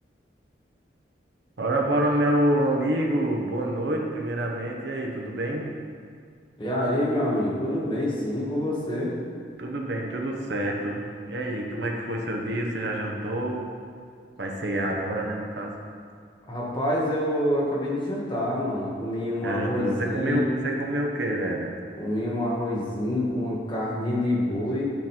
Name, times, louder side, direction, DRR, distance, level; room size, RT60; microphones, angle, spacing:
voice 1, 1.6-5.7 9.6-13.6 14.4-15.7 19.4-21.7, right 1 dB, 75° right, 0 dB, 1.0 m, -27 dB
voice 2, 6.6-9.1 16.5-20.5 21.9-24.8, left 1 dB, 30° left, -6 dB, 1.8 m, -27 dB
11.5 x 4.0 x 4.5 m, 2.1 s
head